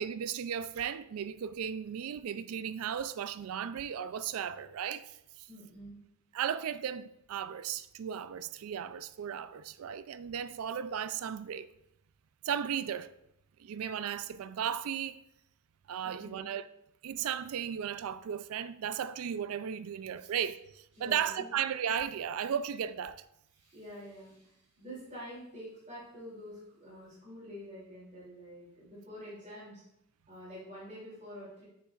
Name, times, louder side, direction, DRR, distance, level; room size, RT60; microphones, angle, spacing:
voice 1, 0.0-5.1 5.4-5.5 6.3-11.7 12.4-13.1 13.6-15.2 15.9-16.7 17.0-23.2, right 8 dB, 75° right, 0.3 m, -35 dB
voice 2, 5.5-5.9 16.0-16.4 20.9-21.5 23.5-29.8 30.3-31.6, equal, 35° right, 2.8 m, -47 dB
7.5 x 6.6 x 2.4 m
head